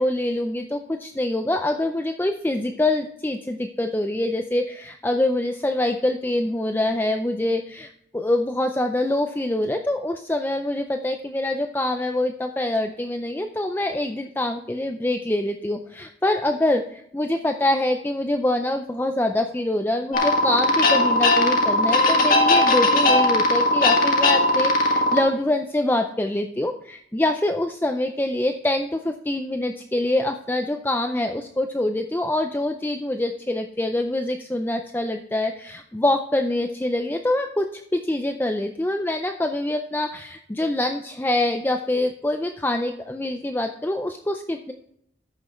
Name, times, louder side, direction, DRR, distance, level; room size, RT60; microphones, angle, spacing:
voice 1, 0.0-44.7, left 1 dB, 10° left, 5 dB, 0.4 m, -25 dB
sound 1, 20.1-25.2, left 2 dB, 45° left, 1.6 m, -19 dB
14.0 x 6.1 x 3.1 m, 0.72 s
head